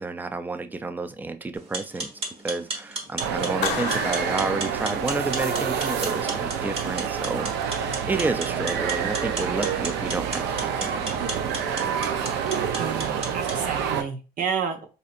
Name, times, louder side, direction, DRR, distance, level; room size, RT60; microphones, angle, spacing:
voice 1, 0.0-2.1 2.4-11.4 11.7-11.9, right 3 dB, 10° right, 9 dB, 0.3 m, -31 dB
sound 1, 1.6-13.6, right 2 dB, 35° right, 1.1 m, -35 dB
sound 2, 3.2-14.0, right 7 dB, 85° right, 0.5 m, -28 dB
Clapping, 3.6-5.5, left 8 dB, 70° left, 0.6 m, -33 dB
voice 2, 12.8-14.8, right 6 dB, 55° right, 5 dB, 0.8 m, -30 dB
4.2 x 2.7 x 2.4 m, 0.32 s
cardioid pair, 110°, 17 cm